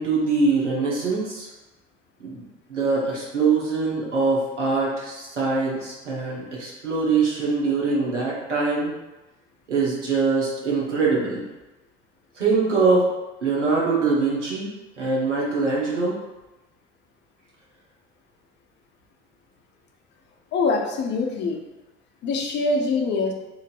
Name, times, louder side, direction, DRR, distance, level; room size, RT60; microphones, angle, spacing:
voice 1, 0.0-1.5 2.2-8.9 9.7-11.4 12.3-13.1 13.4-14.7 15.0-16.2, right 4 dB, 80° right, -5 dB, 0.9 m, -23 dB
voice 2, 20.5-21.6 22.2-23.3, left 3 dB, 30° left, 2 dB, 0.5 m, -24 dB
3.0 x 2.6 x 2.5 m, 1.0 s
figure-of-eight pair, 65°, 35 cm